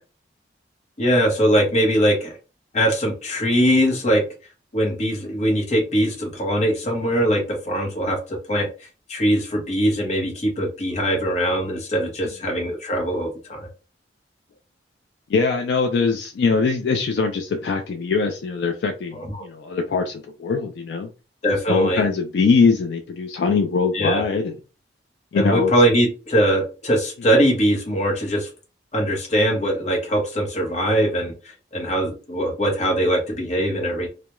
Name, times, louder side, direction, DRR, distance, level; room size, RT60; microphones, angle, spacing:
voice 1, 1.0-2.3 2.7-4.2 4.7-8.7 9.1-13.7 19.1-19.4 21.4-22.0 23.9-24.2 25.3-28.5 28.9-34.1, equal, 40° left, 1 dB, 0.7 m, -21 dB
voice 2, 15.3-21.1 21.7-24.5 25.3-25.7, left 4 dB, 70° left, 4 dB, 0.3 m, -22 dB
2.2 x 2.0 x 2.9 m, 0.33 s
head